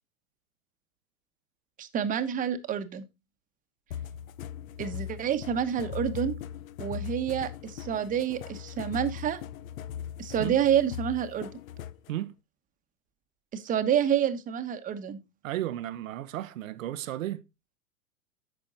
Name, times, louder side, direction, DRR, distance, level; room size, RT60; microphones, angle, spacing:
voice 1, 1.8-3.0 4.8-6.3 6.8-9.4 10.2-11.5 13.5-15.2, right 9 dB, 20° right, 1.0 m, -28 dB
sound 1, 3.9-12.1, left 10 dB, 70° left, 0.8 m, -39 dB
voice 2, 15.4-17.4, right 13 dB, 70° right, 0.8 m, -34 dB
9.2 x 6.2 x 3.9 m
hypercardioid pair, 120°, 42 cm